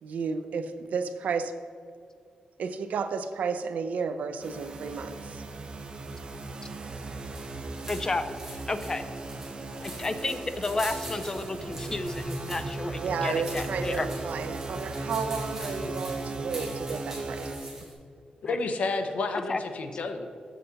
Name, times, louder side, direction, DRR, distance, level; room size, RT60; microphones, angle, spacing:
voice 1, 0.0-1.5 2.6-5.4 12.9-17.5, right 5 dB, 90° right, 9 dB, 0.5 m, -32 dB
sound 1, 4.4-17.6, right 2 dB, 40° right, 0.6 m, -37 dB
sound 2, 7.3-17.9, right 1 dB, 15° right, 2.0 m, -44 dB
voice 2, 7.9-8.2 8.7-9.0 9.8-14.1 18.4-18.6 19.5-19.6, left 3 dB, 25° left, 9 dB, 0.4 m, -31 dB
voice 3, 18.4-20.3, left 3 dB, 70° left, 6 dB, 0.7 m, -30 dB
7.5 x 6.7 x 4.0 m, 2.3 s
wide cardioid pair, 170°, 2 cm